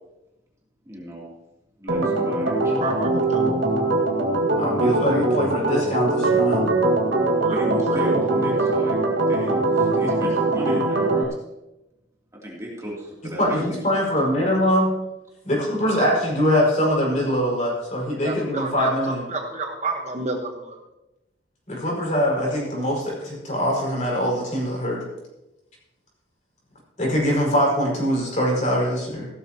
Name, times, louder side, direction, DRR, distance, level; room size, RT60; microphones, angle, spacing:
voice 1, 0.8-1.3 1.8-2.8 7.5-9.0 9.3-11.4 12.4-13.8, equal, 15° right, -4 dB, 2.8 m, -34 dB
Organ, 1.9-11.2, right 2 dB, 85° right, 1.9 m, -21 dB
voice 2, 2.8-3.4 7.4-8.2 18.2-18.9 19.3-20.8, right 2 dB, 40° right, 2 dB, 1.2 m, -29 dB
voice 3, 4.5-6.6 13.4-14.9 15.4-19.2 21.7-25.0 27.0-29.3, equal, 40° left, -3 dB, 5.3 m, -23 dB
16.0 x 13.0 x 2.9 m, 0.96 s
head